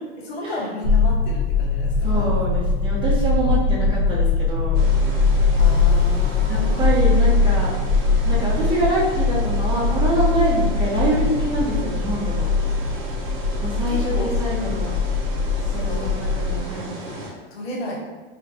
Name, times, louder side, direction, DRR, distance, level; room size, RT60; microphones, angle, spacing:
voice 1, 0.2-2.5 5.6-6.9 13.7-14.3 15.6-16.1 17.5-18.0, left 2 dB, 80° left, -4 dB, 0.9 m, -33 dB
sound 1, 0.8-16.6, left 4 dB, 50° left, 0.5 m, -21 dB
voice 2, 2.0-4.9 6.5-7.7 8.2-12.5 13.6-15.0 15.8-16.9, right 2 dB, 15° right, -5 dB, 0.5 m, -25 dB
sound 2, 4.7-17.3, right 1 dB, 60° right, 0.8 m, -35 dB
2.5 x 2.1 x 2.6 m, 1.3 s
hypercardioid pair, 115°, 31 cm